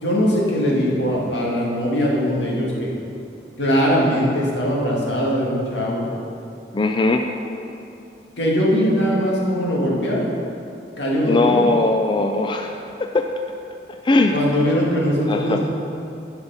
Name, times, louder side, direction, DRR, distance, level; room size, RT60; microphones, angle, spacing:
voice 1, 0.0-2.9 3.6-6.1 8.4-10.3 11.0-11.7 14.3-15.6, equal, 85° left, -4 dB, 2.0 m, -21 dB
voice 2, 6.7-7.2 11.2-13.3 14.0-14.4 15.3-15.6, left 2 dB, 25° left, 4 dB, 0.3 m, -19 dB
10.0 x 5.8 x 5.6 m, 2.6 s
head